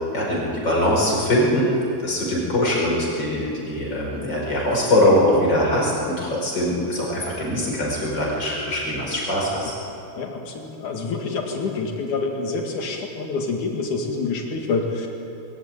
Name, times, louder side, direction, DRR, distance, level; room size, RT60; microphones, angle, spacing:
voice 1, 0.1-1.7 2.0-9.7, left 1 dB, 35° left, -3 dB, 5.9 m, -22 dB
voice 2, 10.2-15.1, left 4 dB, 85° left, 2 dB, 3.6 m, -27 dB
22.0 x 14.5 x 9.0 m, 2.7 s
omnidirectional pair, 3.4 m